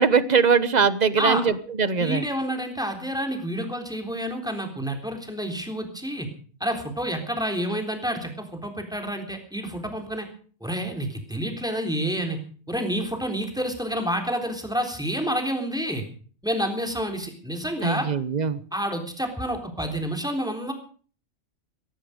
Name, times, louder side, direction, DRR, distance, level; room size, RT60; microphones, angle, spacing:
voice 1, 0.0-2.2 17.8-18.6, right 6 dB, 35° right, 15 dB, 1.0 m, -21 dB
voice 2, 2.0-6.3 6.6-10.3 10.6-12.4 12.7-16.0 16.4-18.1 18.7-20.7, equal, 5° right, 4 dB, 3.6 m, -29 dB
17.0 x 16.0 x 5.1 m, 0.43 s
omnidirectional pair, 1.4 m